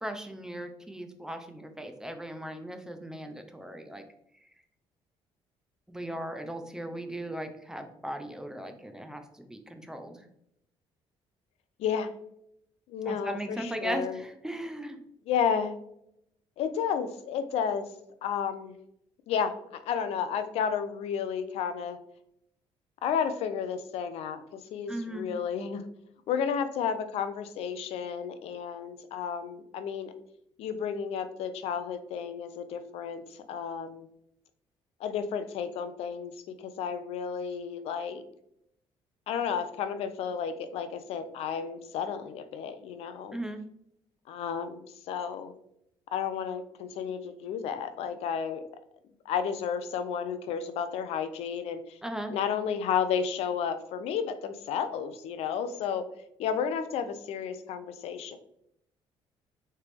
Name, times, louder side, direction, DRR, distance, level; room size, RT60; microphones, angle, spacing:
voice 1, 0.0-4.0 5.9-10.3 13.0-15.0 24.9-25.3 43.3-43.6 52.0-52.4, right 1 dB, 5° right, 6 dB, 0.5 m, -38 dB
voice 2, 11.8-12.1 12.9-14.2 15.3-15.8 16.6-17.9 18.2-18.7 19.3-22.0 23.0-25.8 26.3-30.1 30.6-34.1 35.0-36.3 36.6-38.2 39.3-43.4 44.3-45.5 46.1-48.6 49.3-51.8 52.3-56.1 56.4-58.4, left 7 dB, 80° left, 10 dB, 0.5 m, -32 dB
3.7 x 3.3 x 3.4 m, 0.75 s
cardioid pair, 105°, 11 cm